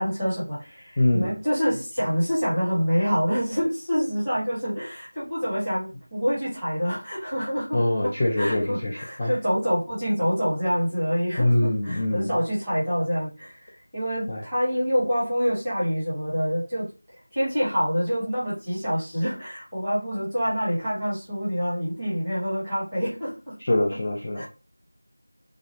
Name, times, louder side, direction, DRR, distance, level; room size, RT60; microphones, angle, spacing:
voice 1, 0.0-16.9 17.3-23.5 24.4-24.5, equal, 5° left, -11 dB, 1.3 m, -26 dB
voice 2, 1.0-1.3 7.7-9.4 11.4-12.3 14.3-14.4 23.6-24.4, left 1 dB, 20° left, -3 dB, 0.5 m, -24 dB
2.8 x 2.4 x 3.2 m, 0.30 s
figure-of-eight pair, 175°, 0 cm